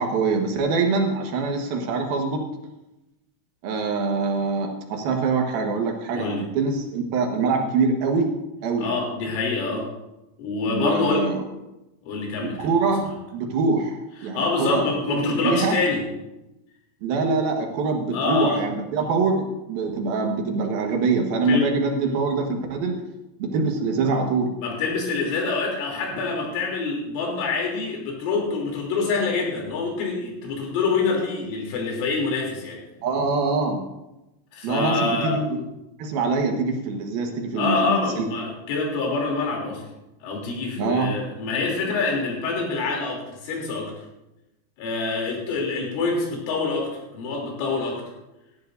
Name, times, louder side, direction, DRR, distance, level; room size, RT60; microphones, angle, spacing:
voice 1, 0.0-2.4 3.6-8.3 8.6-8.9 10.7-11.4 12.4-15.2 15.4-15.8 17.0-23.0 23.4-24.5 33.0-33.8 34.6-35.4 36.0-38.3 40.8-41.1, right 4 dB, 65° right, 2 dB, 2.7 m, -24 dB
voice 2, 6.1-6.4 8.8-9.9 10.4-11.3 12.1-12.7 14.3-16.1 18.1-18.6 21.5-21.7 24.6-32.8 34.5-35.4 37.6-39.8 40.2-43.9 44.8-48.0, left 3 dB, 90° left, -1 dB, 5.7 m, -26 dB
18.0 x 13.0 x 2.6 m, 0.95 s
omnidirectional pair, 5.5 m